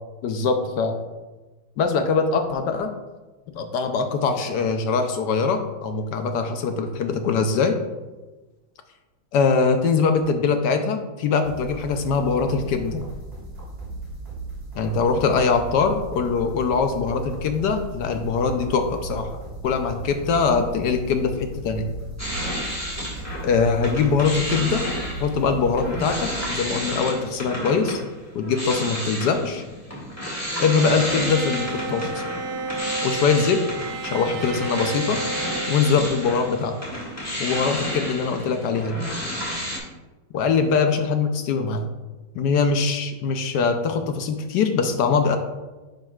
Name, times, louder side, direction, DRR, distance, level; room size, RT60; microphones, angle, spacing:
voice 1, 0.2-1.0 1.8-2.9 3.6-7.8 9.3-13.0 14.7-19.3 19.6-21.9 23.4-24.8 25.2-28.0 28.3-29.6 30.6-32.2 33.0-33.6 34.0-35.2 35.7-36.7 37.4-39.0 40.3-41.9 42.3-45.4, left 5 dB, 70° left, 6 dB, 1.0 m, -22 dB
sound 1, 11.4-26.9, right 3 dB, 30° right, 2.6 m, -37 dB
sound 2, 22.2-23.5 23.8-39.8, equal, 10° left, 1.4 m, -31 dB
Bowed string instrument, 30.8-36.9, right 3 dB, 90° right, 1.5 m, -32 dB
10.0 x 5.4 x 2.3 m, 1.2 s
omnidirectional pair, 2.2 m